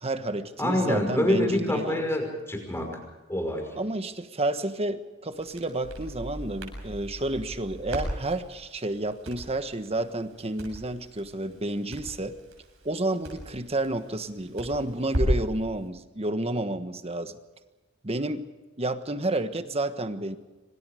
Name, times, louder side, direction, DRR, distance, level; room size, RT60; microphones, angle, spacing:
voice 1, 0.0-2.1 3.8-12.3 12.8-17.4 18.0-18.4 18.8-20.4, right 2 dB, 30° right, 10 dB, 1.4 m, -30 dB
voice 2, 0.6-2.9 3.3-3.7, left 1 dB, 10° left, 3 dB, 5.6 m, -26 dB
Crackle, 5.3-15.6, equal, 70° right, 7.6 m, -35 dB
26.5 x 26.0 x 5.1 m, 1.2 s
head